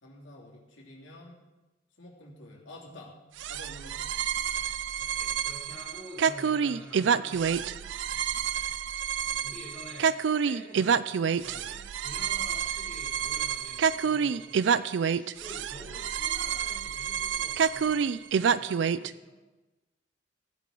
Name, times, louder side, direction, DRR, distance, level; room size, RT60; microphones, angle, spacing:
voice 1, 0.0-1.4 2.0-3.2 3.5-4.1 9.1-9.9, left 1 dB, 90° left, -2 dB, 2.9 m, -49 dB
sound 1, 3.4-19.1, right 7 dB, 75° right, 0.4 m, -28 dB
voice 2, 5.0-8.0 9.4-19.4, left 1 dB, 10° left, -8 dB, 5.3 m, -48 dB
16.0 x 10.0 x 3.9 m, 1.1 s
head